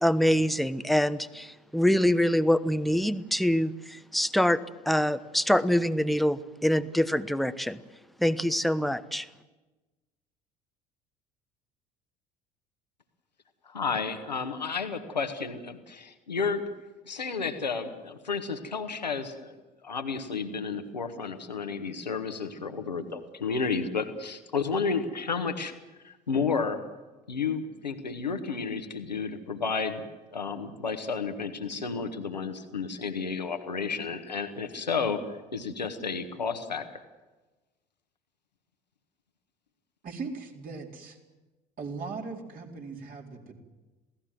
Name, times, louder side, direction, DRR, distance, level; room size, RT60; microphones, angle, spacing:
voice 1, 0.0-4.6 4.9-7.8 8.2-9.3, equal, ahead, 12 dB, 1.0 m, -25 dB
voice 2, 13.6-16.6 17.0-19.6 19.8-25.7 26.0-26.8 27.3-30.0 30.3-36.9, left 5 dB, 90° left, 7 dB, 1.7 m, -32 dB
voice 3, 40.0-41.2 41.8-43.6, right 4 dB, 45° right, 1 dB, 4.2 m, -39 dB
27.5 x 17.5 x 7.7 m, 1.2 s
figure-of-eight pair, 60°, 21 cm